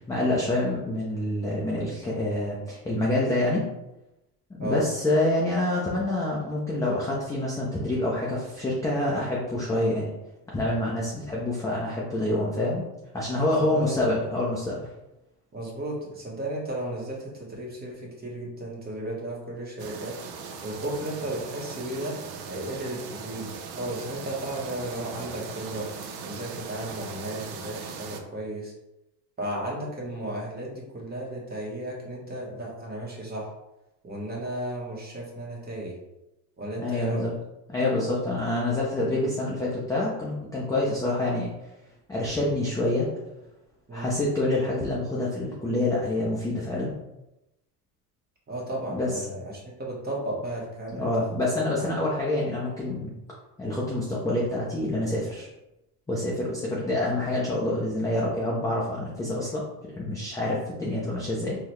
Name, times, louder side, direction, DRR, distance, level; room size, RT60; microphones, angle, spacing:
voice 1, 0.1-3.6 4.6-10.1 10.5-12.8 13.1-14.9 36.8-37.3 37.7-41.5 42.1-43.1 43.9-46.9 48.9-49.1 51.0-53.1 53.6-55.5 56.1-59.6 60.0-61.6, left 1 dB, 5° left, -5 dB, 0.4 m, -27 dB
voice 2, 13.6-14.1 15.5-20.2 20.6-22.2 22.5-25.9 26.2-28.7 29.4-33.5 34.0-35.9 36.6-37.3 43.9-44.1 48.5-51.1 51.8-51.9, right 1 dB, 20° right, -3 dB, 1.1 m, -34 dB
sound 1, 19.8-28.2, right 6 dB, 50° right, 0.6 m, -39 dB
3.7 x 2.2 x 3.1 m, 0.93 s
supercardioid pair, 100°, 48 cm